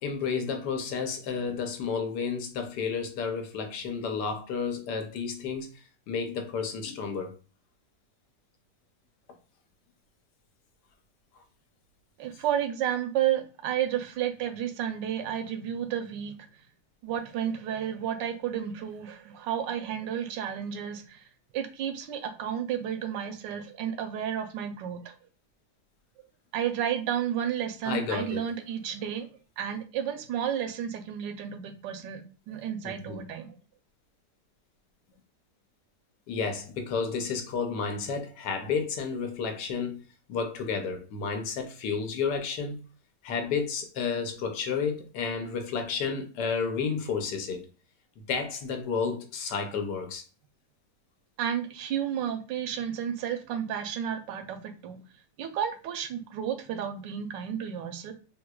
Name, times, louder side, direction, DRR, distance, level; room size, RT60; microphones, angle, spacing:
voice 1, 0.0-5.7 6.1-7.4 27.8-28.4 32.8-33.2 36.3-40.0 40.3-42.8 43.2-47.6 48.3-50.2, left 5 dB, 75° left, 1.2 m, -31 dB
voice 2, 12.2-16.4 17.0-21.2 21.5-25.1 26.5-29.3 29.6-33.5 51.4-55.0 55.4-58.1, right 9 dB, 90° right, 1.2 m, -32 dB
3.7 x 2.8 x 2.2 m
omnidirectional pair, 1.9 m